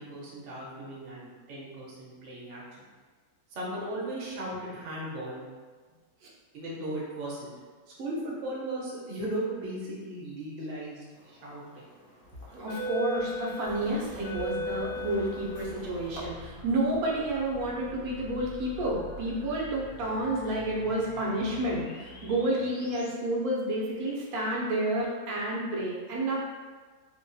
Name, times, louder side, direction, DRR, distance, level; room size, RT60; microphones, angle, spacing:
voice 1, 0.0-2.6 3.5-5.4 6.5-7.5 8.0-11.8, right 1 dB, 50° right, -5 dB, 0.7 m, -37 dB
sound 1, 11.4-11.6 12.4-16.2, left 1 dB, 60° left, 0.7 m, -36 dB
voice 2, 12.5-26.4, right 1 dB, 75° right, -4 dB, 1.1 m, -30 dB
sound 2, 13.6-23.1, left 1 dB, 75° left, 1.0 m, -47 dB
2.8 x 2.3 x 2.6 m, 1.4 s
omnidirectional pair, 1.6 m